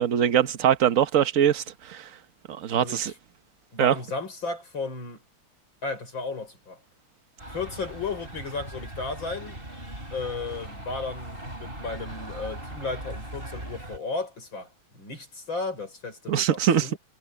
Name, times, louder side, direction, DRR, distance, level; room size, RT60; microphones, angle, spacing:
voice 1, 0.0-2.1 2.5-3.1 3.8-3.9 16.3-16.9, right 9 dB, 45° right, 1.2 m, -22 dB
voice 2, 2.8-3.1 3.7-5.2 5.8-6.8 7.5-9.6 10.1-17.0, left 3 dB, 60° left, 6.3 m, -34 dB
sound 1, 7.4-14.0, right 1 dB, 25° right, 6.4 m, -39 dB
omnidirectional pair, 2.4 m